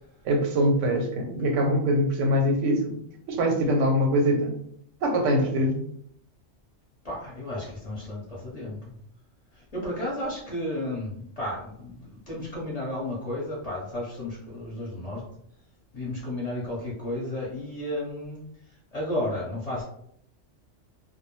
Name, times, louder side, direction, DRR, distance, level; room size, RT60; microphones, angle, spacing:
voice 1, 0.2-3.0 3.3-4.5 5.0-5.8, equal, 90° right, 2 dB, 0.9 m, -23 dB
voice 2, 7.0-8.9 9.5-15.2 15.9-18.4 18.9-19.8, left 1 dB, 35° left, -5 dB, 0.8 m, -33 dB
2.2 x 2.0 x 3.0 m, 0.68 s
omnidirectional pair, 1.2 m